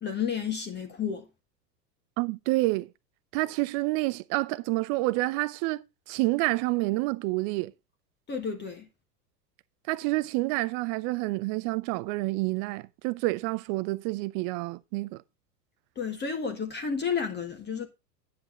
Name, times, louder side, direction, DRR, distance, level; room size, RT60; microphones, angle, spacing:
voice 1, 0.0-1.3 8.3-8.9 15.9-17.9, left 6 dB, 20° left, 1.5 m, -31 dB
voice 2, 2.2-2.9 3.3-7.7 9.9-15.2, right 21 dB, 40° right, 0.7 m, -28 dB
9.7 x 8.4 x 3.8 m
figure-of-eight pair, 95°, 50 cm